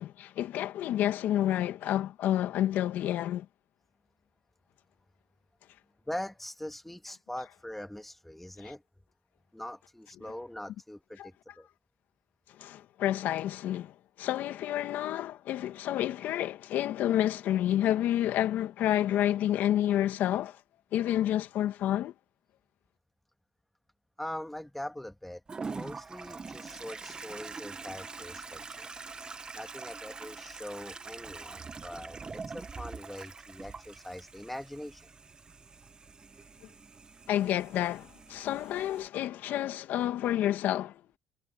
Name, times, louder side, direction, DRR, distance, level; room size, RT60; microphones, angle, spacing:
voice 1, 0.0-3.5 8.6-8.7 11.2-11.3 12.6-20.6 20.9-22.1 37.3-41.0, left 12 dB, 65° left, 2.0 m, -29 dB
voice 2, 6.1-8.8 9.5-11.7 24.2-25.4 25.7-29.0 29.5-35.0, left 1 dB, 5° left, 2.0 m, -42 dB
Toilet flush, 25.5-39.1, right 4 dB, 25° right, 1.1 m, -44 dB
supercardioid pair, 95°, 3 cm